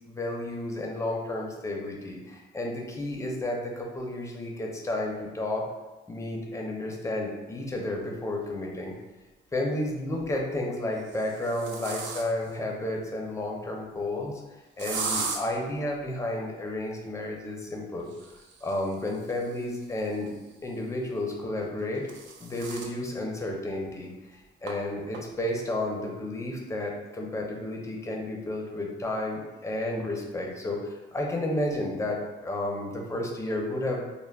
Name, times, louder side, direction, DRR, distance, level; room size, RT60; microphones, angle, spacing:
voice 1, 0.1-5.6 6.1-8.9 9.5-14.4 14.8-18.1 18.6-20.3 20.6-22.1 22.4-34.1, left 1 dB, 15° left, 0 dB, 0.5 m, -32 dB
sound 1, 8.4-8.5 10.0-10.4 11.0-12.6 14.8-15.4 18.0-20.6 21.6-23.0 23.4-23.5 23.9-24.0 24.7-24.8 25.1-25.5, right 4 dB, 70° right, 0.5 m, -37 dB
3.4 x 2.1 x 2.2 m, 1.1 s
cardioid pair, 90°, 20 cm